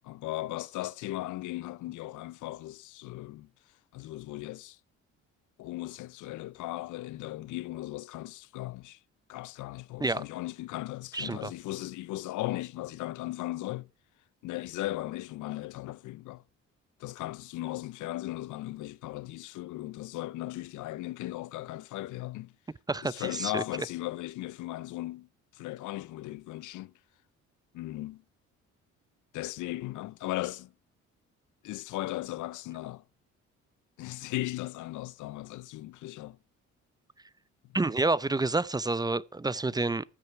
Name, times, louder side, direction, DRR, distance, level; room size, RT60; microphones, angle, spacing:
voice 1, 0.0-3.5 3.9-4.8 5.6-9.0 9.3-13.9 14.4-16.4 17.0-22.5 23.0-26.9 27.7-28.2 29.3-30.7 31.6-33.0 34.0-36.4, left 17 dB, 80° left, 0.5 m, -37 dB
voice 2, 11.1-11.5 22.9-23.6 37.7-40.0, right 3 dB, 15° right, 0.5 m, -29 dB
15.0 x 7.9 x 4.5 m
cardioid pair, 90°, 30 cm